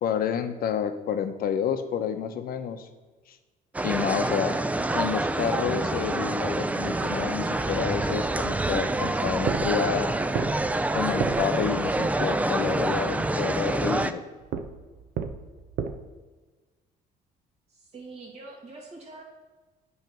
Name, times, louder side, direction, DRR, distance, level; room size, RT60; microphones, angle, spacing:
voice 1, 0.0-2.9 3.3-3.4 3.8-4.6 4.9-10.1 10.9-14.2, left 7 dB, 60° left, 9 dB, 0.7 m, -29 dB
sound 1, 3.7-14.1, right 2 dB, 10° right, 0.3 m, -27 dB
sound 2, 9.3-12.1 14.4-15.9, right 7 dB, 65° right, 0.7 m, -34 dB
voice 2, 17.7-19.2, right 3 dB, 40° right, -3 dB, 2.3 m, -44 dB
9.1 x 3.2 x 5.8 m, 1.3 s
cardioid pair, 110°, 17 cm